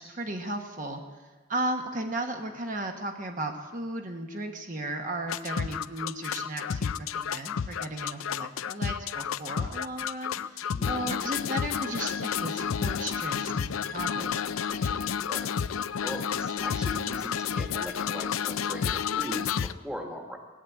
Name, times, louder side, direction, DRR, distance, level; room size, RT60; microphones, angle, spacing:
voice 1, 0.0-15.3, right 1 dB, 40° right, 3 dB, 1.3 m, -35 dB
sound 1, 5.3-19.7, left 7 dB, 85° left, 0.5 m, -31 dB
voice 2, 10.7-11.0 15.2-15.5 16.0-20.4, equal, 5° right, 2 dB, 1.5 m, -39 dB
17.5 x 9.4 x 8.3 m, 1.3 s
head